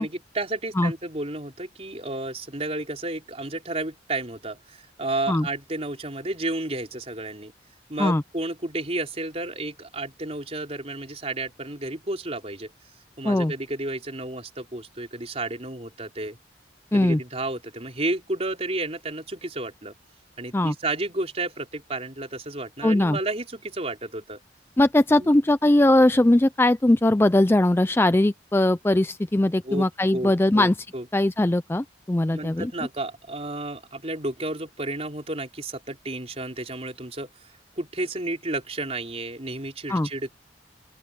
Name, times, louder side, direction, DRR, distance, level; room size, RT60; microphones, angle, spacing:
voice 1, 0.0-7.5 7.9-12.7 13.2-16.4 16.9-19.9 20.4-24.4 25.2-25.3 29.6-29.9 30.1-31.1 32.3-37.3 37.8-40.3, right 2 dB, 35° right, 4.2 m, -32 dB
voice 2, 22.8-23.2 24.8-30.7 31.1-32.7 39.9-40.1, left 1 dB, 10° left, 0.4 m, -20 dB
open air
head